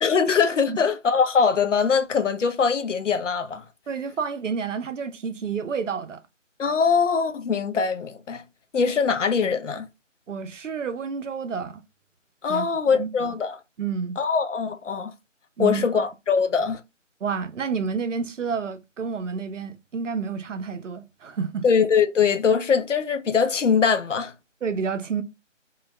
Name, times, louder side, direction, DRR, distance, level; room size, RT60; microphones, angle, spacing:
voice 1, 0.0-3.6 6.6-8.4 8.7-9.9 12.4-13.6 14.2-15.1 15.6-16.8 21.6-24.3, left 6 dB, 70° left, 0.6 m, -22 dB
voice 2, 3.9-6.2 10.3-11.8 12.5-13.3 13.8-14.2 15.6-16.0 17.2-21.7 24.6-25.2, right 6 dB, 70° right, 0.5 m, -30 dB
2.2 x 2.0 x 3.3 m
figure-of-eight pair, 160°, 38 cm